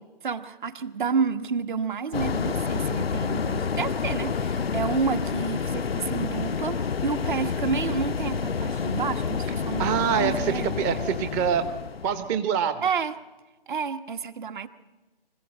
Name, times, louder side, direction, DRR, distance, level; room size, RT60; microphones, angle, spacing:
voice 1, 0.2-10.8 12.8-13.1 13.7-14.7, right 5 dB, 55° right, 9 dB, 1.5 m, -30 dB
sound 1, 2.1-12.3, left 6 dB, 85° left, 0.6 m, -29 dB
voice 2, 9.8-11.6 12.0-12.8, right 7 dB, 15° right, 10 dB, 0.8 m, -25 dB
24.5 x 15.0 x 8.8 m, 1.1 s
figure-of-eight pair, 135°, 29 cm